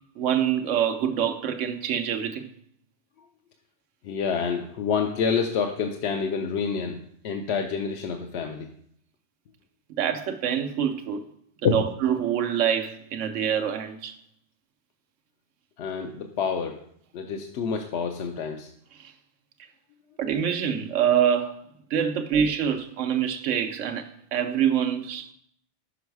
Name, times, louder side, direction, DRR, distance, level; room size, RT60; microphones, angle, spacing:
voice 1, 0.2-2.5 10.0-11.2 11.7-14.1 20.2-21.5 21.9-25.3, right 8 dB, 85° right, 1.0 m, -25 dB
voice 2, 4.0-8.7 11.6-11.8 15.8-16.8 17.1-18.7, left 6 dB, 70° left, 0.8 m, -28 dB
6.2 x 5.3 x 4.6 m
omnidirectional pair, 1.2 m